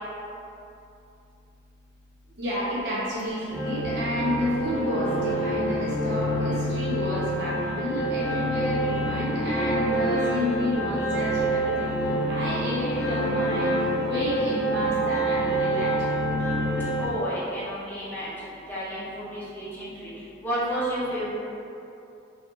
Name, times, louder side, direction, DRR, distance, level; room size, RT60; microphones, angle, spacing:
voice 1, 2.4-16.1, equal, 60° right, -8 dB, 0.9 m, -30 dB
sound 1, 3.5-17.1, right 1 dB, 60° left, 0.7 m, -27 dB
voice 2, 17.0-20.1 20.4-21.3, equal, 10° left, -10 dB, 0.7 m, -31 dB
3.3 x 2.5 x 2.8 m, 2.7 s
head